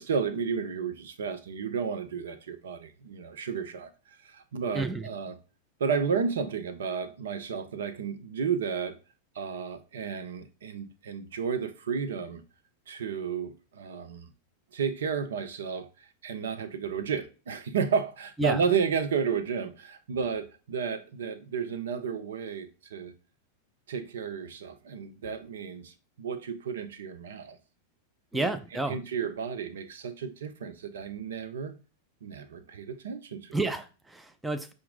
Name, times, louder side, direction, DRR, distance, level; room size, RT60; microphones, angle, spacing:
voice 1, 0.0-3.9 4.2-5.3 5.8-9.0 9.3-12.4 12.9-14.3 14.7-23.1 23.9-27.6 28.3-28.5 28.9-31.7 32.2-33.6, right 6 dB, 65° right, 0.5 m, -32 dB
voice 2, 4.7-5.1 18.4-18.6 28.3-29.0 33.5-34.7, right 2 dB, 5° right, 0.4 m, -30 dB
5.7 x 2.6 x 3.5 m
figure-of-eight pair, 90°, 0 cm